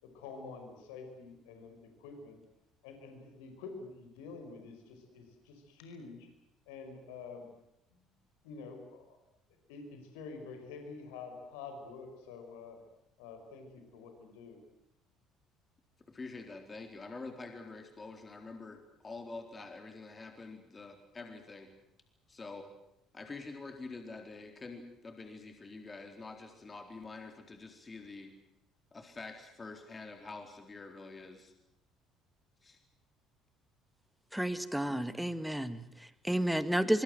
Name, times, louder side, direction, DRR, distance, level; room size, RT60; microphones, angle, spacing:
voice 1, 0.0-2.4 2.8-6.3 6.7-7.5 7.9-8.0 8.4-9.2 9.7-12.8 13.2-14.6, left 4 dB, 70° left, 6 dB, 5.2 m, -48 dB
voice 2, 16.1-21.7 22.3-22.7 23.1-28.3 28.9-31.5 32.6-32.8, left 3 dB, 25° left, 5 dB, 4.0 m, -46 dB
voice 3, 34.3-37.0, right 1 dB, 5° right, 12 dB, 2.0 m, -31 dB
24.5 x 24.5 x 7.8 m, 0.82 s
figure-of-eight pair, 55°, 0 cm